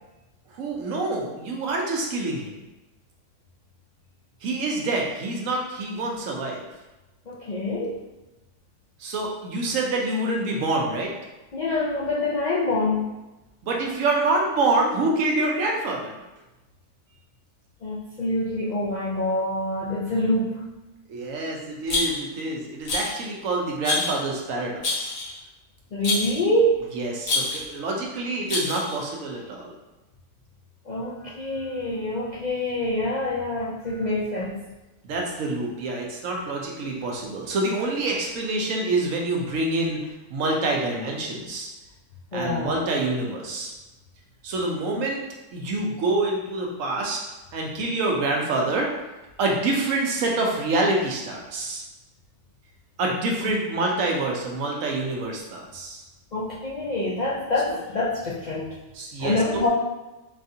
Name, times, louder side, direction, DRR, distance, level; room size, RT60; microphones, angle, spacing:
voice 1, 0.6-2.5 4.4-6.6 9.0-11.1 13.6-16.1 21.1-25.1 26.9-29.7 35.0-40.0 40.3-41.7 42.3-43.7 44.4-45.2 45.5-47.2 47.5-48.9 49.4-51.8 53.0-56.0 58.9-59.6, right 2 dB, 80° right, -1 dB, 1.1 m, -26 dB
voice 2, 7.3-8.0 11.5-13.1 17.8-20.6 25.9-26.8 30.9-34.6 42.3-42.8 53.4-53.5 56.3-58.7 59.2-59.7, left 1 dB, 60° left, -7 dB, 0.4 m, -26 dB
Rattle, 21.9-22.4 22.9-23.2 23.8-24.2 24.8-25.4 26.0-26.4 27.2-27.7 28.5-29.0, left 3 dB, 80° left, 1.4 m, -27 dB
5.1 x 2.4 x 2.7 m, 1.0 s
omnidirectional pair, 1.4 m